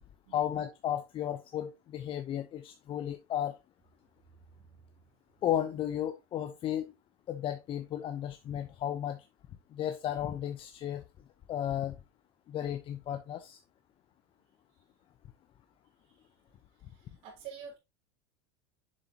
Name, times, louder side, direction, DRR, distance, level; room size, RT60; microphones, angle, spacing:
voice 1, 0.3-3.5 5.4-6.9 7.3-9.2 9.7-11.0 11.5-11.9 12.5-13.6, left 10 dB, 40° left, 0.8 m, -34 dB
voice 2, 4.3-5.0 16.1-16.2 16.9-17.8, right 7 dB, 55° right, 3.9 m, -49 dB
7.3 x 6.9 x 2.9 m
supercardioid pair, 105°, 14 cm